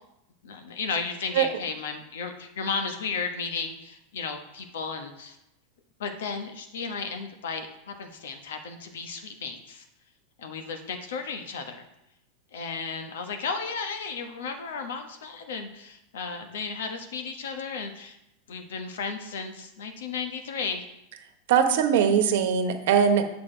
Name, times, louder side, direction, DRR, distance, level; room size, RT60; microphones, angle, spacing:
voice 1, 0.4-5.4 6.0-9.8 10.4-11.8 12.5-18.2 18.5-20.8, left 5 dB, 80° left, 5 dB, 1.1 m, -34 dB
voice 2, 21.5-23.2, right 7 dB, 70° right, 7 dB, 1.1 m, -21 dB
8.2 x 5.9 x 4.5 m, 0.85 s
hypercardioid pair, 115°, 0 cm